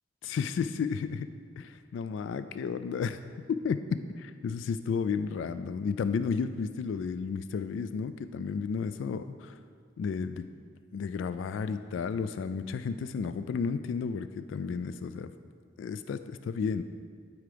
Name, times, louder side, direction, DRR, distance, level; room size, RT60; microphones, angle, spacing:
voice 1, 0.2-1.3 1.6-3.2 3.5-9.6 10.0-10.5 10.9-15.3 15.8-16.8, left 5 dB, 90° left, 12 dB, 0.3 m, -32 dB
12.0 x 4.7 x 5.0 m, 2.1 s
head